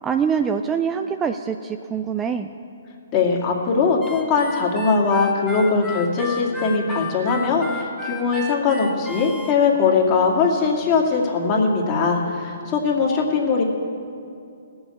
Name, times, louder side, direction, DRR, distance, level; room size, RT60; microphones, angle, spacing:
voice 1, 0.0-2.5, right 7 dB, 15° right, 7 dB, 0.4 m, -24 dB
voice 2, 3.1-13.6, left 4 dB, 30° left, -1 dB, 2.3 m, -20 dB
Harmonica, 4.0-9.5, left 3 dB, 5° left, 1.4 m, -34 dB
17.5 x 7.2 x 8.5 m, 2.5 s
hypercardioid pair, 140°, 0 cm